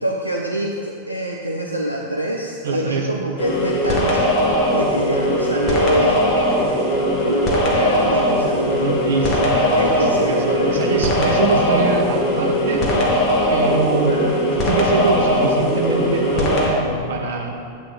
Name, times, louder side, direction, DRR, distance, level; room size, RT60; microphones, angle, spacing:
voice 1, 0.0-10.8 14.0-14.3, equal, 90° right, -1 dB, 0.8 m, -26 dB
voice 2, 2.6-3.1 8.5-12.9 13.5-14.2 14.5-17.5, right 4 dB, 65° right, 0 dB, 1.6 m, -24 dB
sound 1, 3.4-16.7, equal, 40° left, 2.3 m, -19 dB
13.0 x 8.7 x 4.2 m, 2.4 s
figure-of-eight pair, 90°, 0 cm